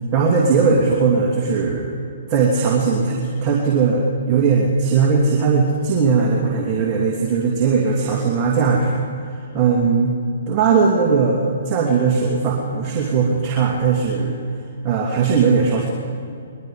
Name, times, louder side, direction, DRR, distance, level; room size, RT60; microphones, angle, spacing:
voice 1, 0.1-1.9 2.3-10.1 10.5-14.4 14.8-15.9, right 5 dB, 30° right, -2 dB, 2.8 m, -18 dB
23.5 x 21.5 x 5.1 m, 2.5 s
hypercardioid pair, 145°, 0 cm